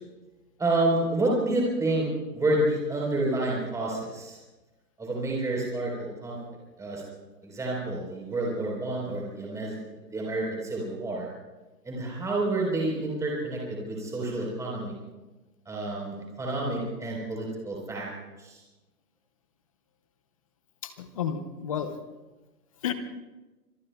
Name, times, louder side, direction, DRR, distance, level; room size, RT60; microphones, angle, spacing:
voice 1, 0.6-2.1 2.3-4.4 5.0-6.4 6.8-7.0 7.4-11.3 11.8-14.9 15.7-18.1 18.4-18.6, right 2 dB, 5° right, -3 dB, 4.0 m, -29 dB
voice 2, 20.8-22.0 22.8-22.9, left 8 dB, 20° left, 10 dB, 0.6 m, -31 dB
25.5 x 22.0 x 2.3 m, 1.1 s
hypercardioid pair, 145°, 49 cm